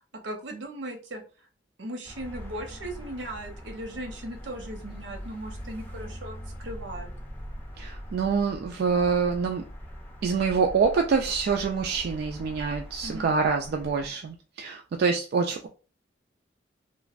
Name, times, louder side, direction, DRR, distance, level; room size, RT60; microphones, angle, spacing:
voice 1, 0.2-1.2 1.8-7.1 13.0-13.3, right 1 dB, 80° right, 3 dB, 0.8 m, -38 dB
sound 1, 2.1-14.1, equal, 10° left, 0.6 m, -42 dB
voice 2, 7.8-9.6 10.2-15.7, right 5 dB, 60° right, 3 dB, 0.3 m, -26 dB
3.0 x 2.4 x 2.4 m, 0.35 s
head